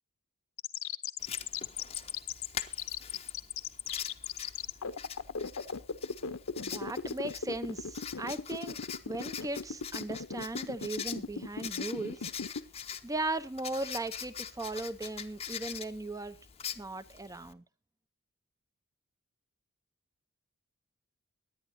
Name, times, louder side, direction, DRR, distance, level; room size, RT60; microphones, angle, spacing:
sound 1, 0.6-12.6, left 6 dB, 65° left, 0.8 m, -37 dB
Writing, 1.2-17.5, left 8 dB, 30° left, 0.8 m, -44 dB
voice 1, 6.6-8.8 9.0-12.3 13.0-16.4 16.7-17.6, right 2 dB, 15° right, 14 dB, 0.8 m, -37 dB
23.0 x 10.0 x 2.8 m, 0.27 s
head